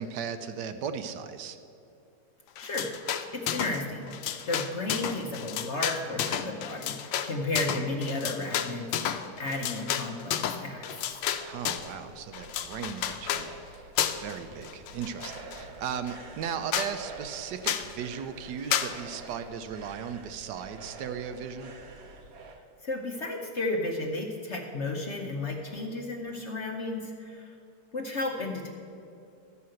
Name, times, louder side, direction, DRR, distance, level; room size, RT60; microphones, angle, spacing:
voice 1, 0.0-1.6 11.4-13.8 14.1-21.7, right 7 dB, 75° right, 9 dB, 1.2 m, -37 dB
sound 1, 2.6-3.8 4.1-11.9 12.3-13.5 14.0-14.4 14.6-15.6 16.1-16.2 16.4-16.5 16.7-16.9 17.6-17.9 18.7-18.9, left 10 dB, 90° left, 1.3 m, -31 dB
voice 2, 2.6-2.9 3.3-10.9 22.8-27.5 27.9-28.7, left 2 dB, 50° left, 1 dB, 0.9 m, -33 dB
sound 2, 11.1-22.6, right 3 dB, 50° right, 0.8 m, -48 dB
12.5 x 5.7 x 7.6 m, 2.7 s
omnidirectional pair, 2.0 m